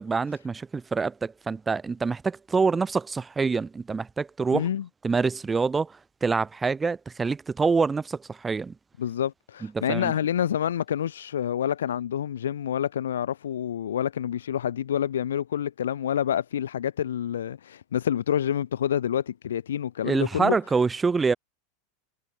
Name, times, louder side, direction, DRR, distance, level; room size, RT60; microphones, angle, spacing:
voice 1, 0.0-4.7 5.0-5.9 6.2-8.7 9.8-10.1 20.0-21.3, right 4 dB, 15° right, 3.7 m, -26 dB
voice 2, 4.5-4.9 9.0-20.6, left 9 dB, 75° left, 2.8 m, -28 dB
hypercardioid pair, 90°, 0 cm